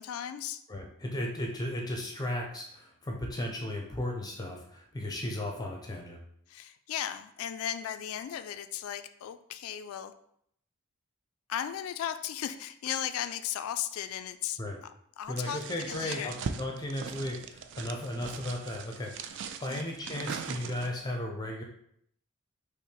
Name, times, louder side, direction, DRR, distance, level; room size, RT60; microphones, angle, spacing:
voice 1, 0.0-0.6 6.5-10.1 11.5-14.9 15.2-16.4 19.7-19.8, left 10 dB, 70° left, 10 dB, 0.3 m, -36 dB
voice 2, 0.7-6.2 14.6-14.8 15.3-21.6, left 1 dB, 20° left, 1 dB, 0.5 m, -35 dB
sound 1, 15.4-21.1, right 6 dB, 55° right, 0.4 m, -40 dB
5.6 x 2.1 x 4.5 m, 0.69 s
head